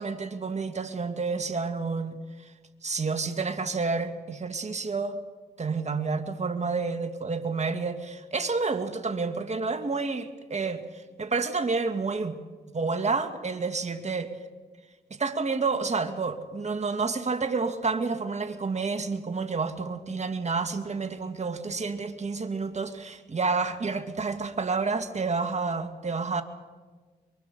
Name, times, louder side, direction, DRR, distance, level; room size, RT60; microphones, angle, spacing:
voice 1, 0.0-2.2 2.8-5.2 5.6-12.4 12.7-14.3 15.2-26.4, right 4 dB, 40° right, 7 dB, 2.0 m, -29 dB
24.0 x 23.0 x 6.9 m, 1.4 s
cardioid pair, 55°, 18 cm